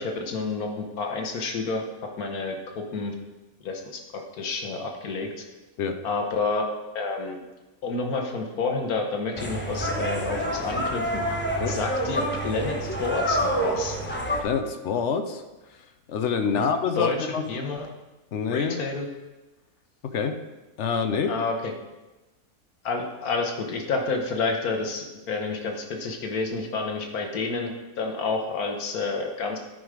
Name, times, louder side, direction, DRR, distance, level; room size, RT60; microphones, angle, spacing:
voice 1, 0.0-1.8 2.2-3.1 3.6-5.3 6.0-6.7 6.9-7.4 7.8-11.4 11.6-14.0 16.5-16.7 17.0-17.2 17.5-17.9 18.5-19.1 21.3-21.7 22.8-29.6, left 3 dB, 85° left, 2 dB, 1.5 m, -29 dB
sound 1, 9.4-14.4, equal, 10° left, 0.8 m, -27 dB
voice 2, 14.4-15.4 16.1-17.4 18.3-18.8 20.0-20.4 20.8-21.3, left 6 dB, 60° left, 8 dB, 0.9 m, -26 dB
10.0 x 4.8 x 5.0 m, 1.1 s
omnidirectional pair, 1.5 m